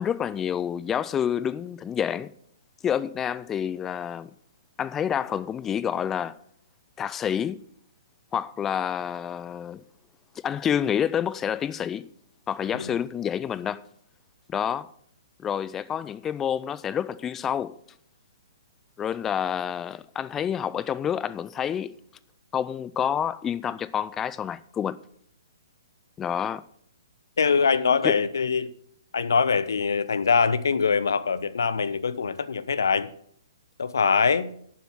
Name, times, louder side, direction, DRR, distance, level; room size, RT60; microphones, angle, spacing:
voice 1, 0.0-2.3 2.8-4.3 4.8-6.4 7.0-7.6 8.3-9.8 10.4-12.1 12.5-13.8 14.5-14.9 15.4-17.8 19.0-21.9 22.5-25.0 26.2-26.6 28.0-28.2, left 9 dB, 15° left, 0.4 m, -28 dB
voice 2, 27.4-28.7 29.1-33.1 33.8-34.5, left 5 dB, 60° left, 0.6 m, -23 dB
11.0 x 7.2 x 5.9 m
figure-of-eight pair, 125°, 2 cm